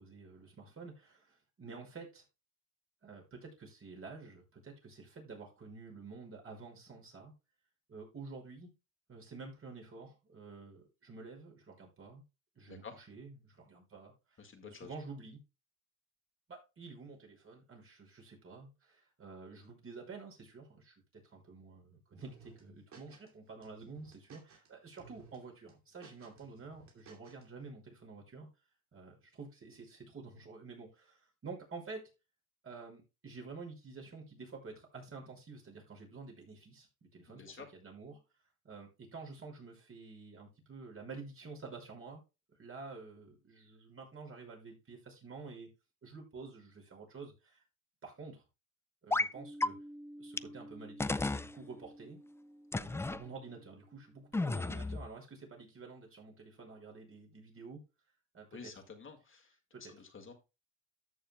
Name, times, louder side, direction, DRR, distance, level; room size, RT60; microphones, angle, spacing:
voice 1, 0.0-2.2 3.0-7.3 7.9-8.7 9.1-12.2 12.6-15.4 16.5-28.5 28.9-32.1 32.6-38.2 38.6-42.2 42.5-45.7 46.0-47.6 48.0-48.4 49.0-49.8 50.2-52.2 52.7-57.8 58.3-58.7 59.7-59.9, right 4 dB, 45° right, 0 dB, 5.8 m, -50 dB
voice 2, 14.4-14.9 37.3-37.7 58.5-59.5 59.9-60.3, left 5 dB, 40° left, 4 dB, 1.9 m, -50 dB
sound 1, 22.2-23.3 23.6-24.7 25.0-25.4 25.7-27.4, right 5 dB, 70° right, 2.7 m, -58 dB
sound 2, 49.1-49.3 49.6-49.7 50.4-50.5 51.0-51.5 52.7-53.2 54.3-55.1, left 2 dB, 10° left, 0.3 m, -32 dB
sound 3, 49.3-54.9, equal, 25° right, 2.1 m, -53 dB
13.5 x 6.9 x 2.2 m, 0.27 s
cardioid pair, 90°, 30 cm